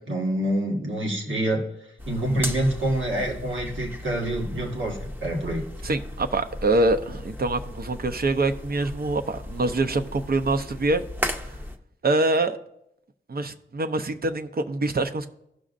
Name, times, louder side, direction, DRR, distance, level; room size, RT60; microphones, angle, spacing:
voice 1, 0.1-1.6 2.1-5.6, right 1 dB, 75° right, -1 dB, 1.5 m, -26 dB
City Golf Wroclaw, 2.0-11.8, left 1 dB, 10° right, 0.7 m, -36 dB
voice 2, 5.8-11.0 12.0-12.6 13.3-15.3, right 2 dB, 50° right, 8 dB, 0.6 m, -25 dB
16.0 x 6.2 x 2.5 m, 0.80 s
wide cardioid pair, 105°, 20 cm